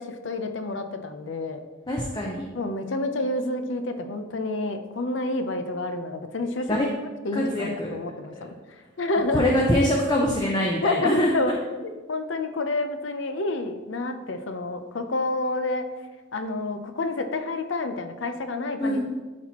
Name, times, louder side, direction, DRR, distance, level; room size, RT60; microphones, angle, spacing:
voice 1, 0.0-1.6 2.5-6.7 7.2-8.5 9.0-9.5 10.8-15.9 16.3-19.0, left 2 dB, 70° left, 7 dB, 0.6 m, -29 dB
voice 2, 1.9-2.5 6.7-6.9 7.3-7.9 9.3-11.5 18.8-19.1, left 1 dB, 20° left, -1 dB, 0.6 m, -24 dB
11.5 x 4.2 x 2.9 m, 1.2 s
head